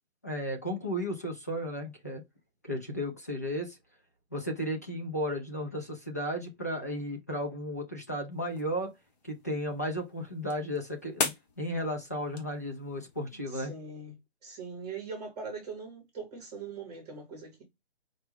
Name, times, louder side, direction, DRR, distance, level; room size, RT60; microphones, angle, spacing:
voice 1, 0.2-2.2 2.6-3.8 4.3-8.9 9.2-11.3 11.6-13.7, equal, 15° left, 0.4 m, -34 dB
sound 1, 8.3-13.4, left 3 dB, 40° left, 1.2 m, -40 dB
voice 2, 13.5-14.2 14.4-17.6, right 4 dB, 15° right, 1.1 m, -41 dB
5.1 x 2.2 x 3.4 m
hypercardioid pair, 155°, 32 cm